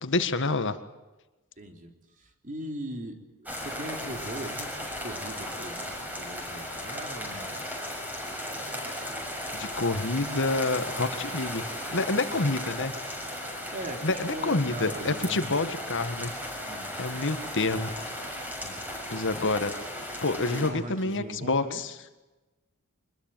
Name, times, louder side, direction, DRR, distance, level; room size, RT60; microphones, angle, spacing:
voice 1, 0.0-0.8 9.5-12.9 14.0-16.3 17.0-17.9 19.1-19.7 20.2-21.9, left 3 dB, 60° left, 10 dB, 1.8 m, -28 dB
voice 2, 1.6-7.6 12.3-12.4 12.7-12.8 13.7-15.5 16.6-16.9 18.6-18.8 20.5-21.8, right 1 dB, 35° right, 5 dB, 3.7 m, -40 dB
rain on terrance, 3.5-20.7, left 1 dB, 10° right, 6.9 m, -36 dB
25.5 x 21.0 x 9.3 m, 1.1 s
head